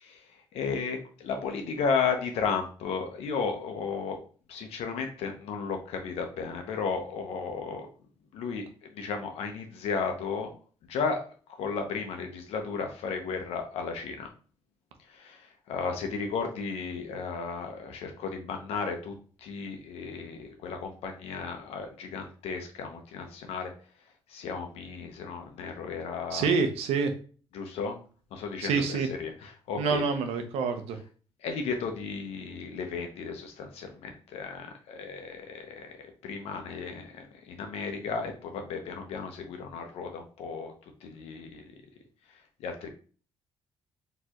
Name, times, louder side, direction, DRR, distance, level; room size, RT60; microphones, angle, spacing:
voice 1, 0.0-4.2 4.5-7.9 8.3-10.5 10.9-11.2 11.5-14.3 15.1-23.7 24.3-26.5 27.5-28.0 28.3-30.0 31.4-40.7 41.0-41.7 42.6-42.9, left 5 dB, 85° left, 5 dB, 0.9 m, -34 dB
voice 2, 26.3-27.1 28.6-29.1 29.8-31.0, right 5 dB, 85° right, 6 dB, 0.8 m, -27 dB
4.5 x 3.2 x 3.0 m, 0.40 s
cardioid pair, 80°, 10 cm